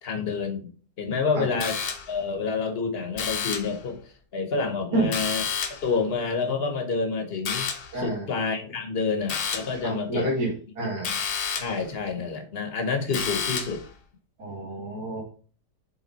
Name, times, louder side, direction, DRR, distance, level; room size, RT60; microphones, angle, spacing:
voice 1, 0.0-0.7 1.0-1.8 2.1-4.0 4.3-5.4 5.8-7.7 7.9-10.3 10.8-11.1 11.6-13.8, left 4 dB, 40° left, 6 dB, 1.2 m, -28 dB
sound 1, 1.6-2.3 3.2-3.8 5.1-5.9 7.5-8.0 9.3-9.8 11.0-11.8 13.1-13.9, left 6 dB, 65° left, 1.4 m, -30 dB
voice 2, 7.9-8.3 9.8-11.1 14.4-15.2, right 2 dB, 70° right, -7 dB, 2.8 m, -29 dB
7.4 x 3.8 x 4.1 m, 0.41 s
omnidirectional pair, 1.8 m